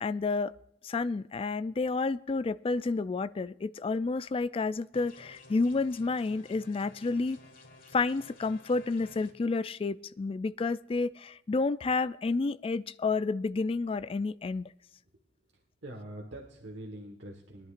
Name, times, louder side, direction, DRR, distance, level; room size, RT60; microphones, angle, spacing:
voice 1, 0.0-0.5 0.8-7.4 7.9-14.7, left 3 dB, 30° left, 0.3 m, -30 dB
sound 1, 4.9-9.3, left 2 dB, 50° left, 1.5 m, -54 dB
voice 2, 15.5-17.7, right 1 dB, 70° right, 1.5 m, -44 dB
22.0 x 11.0 x 2.5 m
head